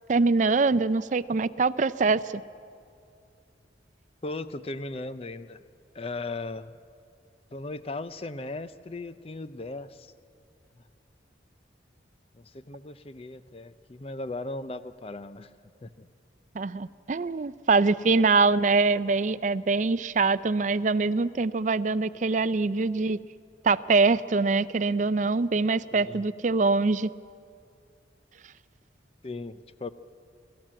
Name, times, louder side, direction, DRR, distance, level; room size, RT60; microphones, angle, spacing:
voice 1, 0.1-2.4 16.6-23.2 23.6-27.1, right 3 dB, 40° right, 16 dB, 0.4 m, -24 dB
voice 2, 4.2-5.6 5.9-6.7 7.5-10.1 12.3-15.5 15.8-16.1 25.9-26.2 29.2-29.9, left 2 dB, 30° left, 13 dB, 0.5 m, -37 dB
26.0 x 13.5 x 7.6 m, 2.4 s
head